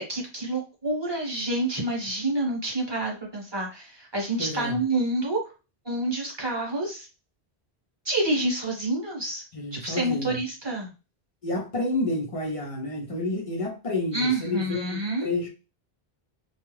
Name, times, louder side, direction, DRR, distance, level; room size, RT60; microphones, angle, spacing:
voice 1, 0.0-5.4 5.8-7.1 8.0-9.4 9.7-10.9 14.1-15.3, right 2 dB, 25° right, 0.9 m, -28 dB
voice 2, 4.4-4.8 9.5-10.4 11.4-15.5, left 2 dB, 40° left, 0.6 m, -30 dB
2.3 x 2.3 x 3.1 m
omnidirectional pair, 1.1 m